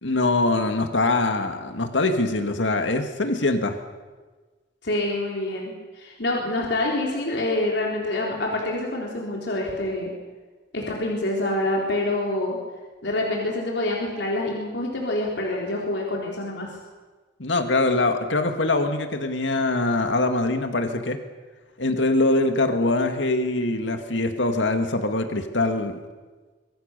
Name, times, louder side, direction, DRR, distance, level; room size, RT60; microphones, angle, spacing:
voice 1, 0.0-3.8 17.4-21.2 21.8-26.0, left 2 dB, 85° left, 6 dB, 2.2 m, -23 dB
voice 2, 4.8-10.1 10.7-12.6 13.0-16.7, left 1 dB, 65° left, -2 dB, 4.2 m, -26 dB
25.5 x 22.5 x 6.8 m, 1.3 s
head